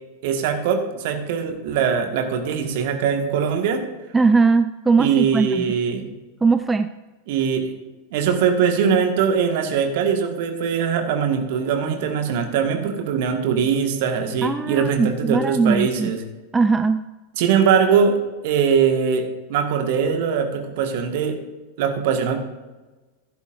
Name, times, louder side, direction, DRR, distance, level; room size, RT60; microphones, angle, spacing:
voice 1, 0.2-3.8 5.0-6.0 7.3-7.7 8.1-16.2 17.4-21.4 21.8-22.4, right 7 dB, 50° right, 5 dB, 1.6 m, -21 dB
voice 2, 4.1-5.7 6.4-6.9 14.4-16.1 16.5-17.0, right 4 dB, 10° right, 11 dB, 0.3 m, -19 dB
15.5 x 11.5 x 2.6 m, 1.2 s
figure-of-eight pair, 90°, 0 cm